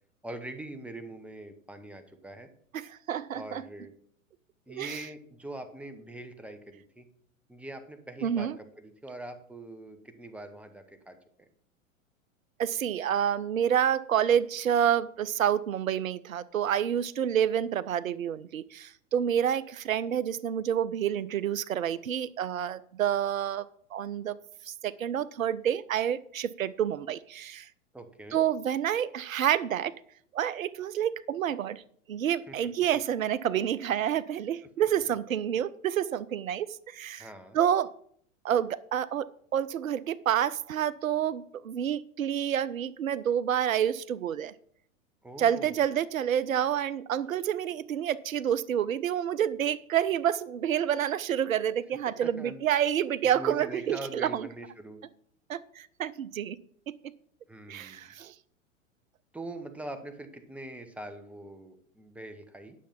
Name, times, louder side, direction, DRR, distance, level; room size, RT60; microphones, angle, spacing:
voice 1, 0.2-2.5 3.3-3.9 4.7-7.1 7.5-11.5 27.9-28.4 32.5-32.6 37.2-37.6 45.2-45.8 52.1-52.6 53.2-55.0 57.5-58.1 59.3-62.7, right 1 dB, 5° right, 8 dB, 1.2 m, -43 dB
voice 2, 2.7-3.6 4.7-5.0 8.2-8.6 12.6-23.7 23.9-24.4 24.7-27.7 28.3-30.0 30.3-31.8 32.1-37.3 37.5-37.9 38.4-44.5 45.4-54.5 55.5-56.6 56.9-57.1 57.7-58.3, right 9 dB, 85° right, 19 dB, 0.6 m, -28 dB
10.0 x 6.8 x 5.8 m, 0.63 s
hypercardioid pair, 100°, 40 cm